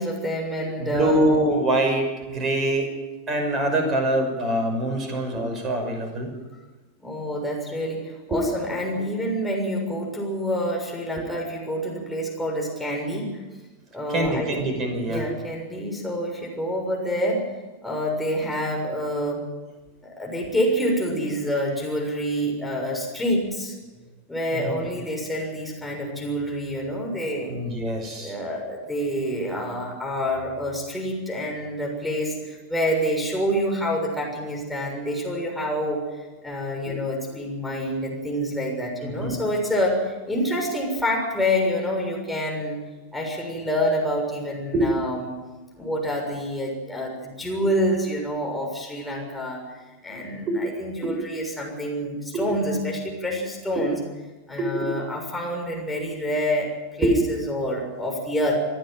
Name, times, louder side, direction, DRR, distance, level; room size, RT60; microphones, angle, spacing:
voice 1, 0.0-1.2 7.0-13.3 13.9-14.6 15.1-17.4 17.8-19.4 20.0-23.7 24.3-27.5 28.2-36.0 36.4-42.8 43.1-45.3 45.8-49.6 50.0-53.9 54.5-58.6, equal, 5° left, -2 dB, 6.8 m, -27 dB
voice 2, 0.8-3.0 3.3-6.3 14.1-15.3 24.5-24.8 27.5-28.3 36.9-37.0 39.0-39.4 44.7-44.9 45.8-45.9 50.5-50.6 51.0-51.1 53.8-53.9 54.8-54.9 57.0-57.1, right 1 dB, 25° right, 4 dB, 5.9 m, -24 dB
28.0 x 10.0 x 9.2 m, 1.2 s
figure-of-eight pair, 90°, 0 cm